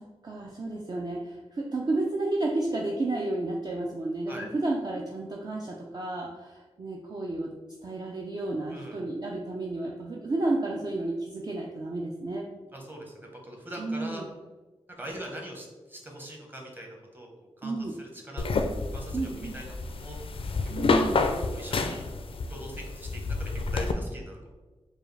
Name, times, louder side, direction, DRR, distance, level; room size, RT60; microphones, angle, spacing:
voice 1, 0.0-7.5 7.8-12.5 13.8-14.3 17.6-17.9 19.1-19.6 20.7-21.3, right 2 dB, 40° right, -1 dB, 0.4 m, -31 dB
voice 2, 8.7-9.0 12.7-14.2 15.0-18.4 18.9-20.2 20.9-21.1 21.5-22.0 22.5-24.5, right 1 dB, 20° right, 0 dB, 1.0 m, -42 dB
sound 1, 18.4-23.9, left 3 dB, 55° left, 0.4 m, -29 dB
4.7 x 2.4 x 3.2 m, 1.2 s
wide cardioid pair, 85°, 11 cm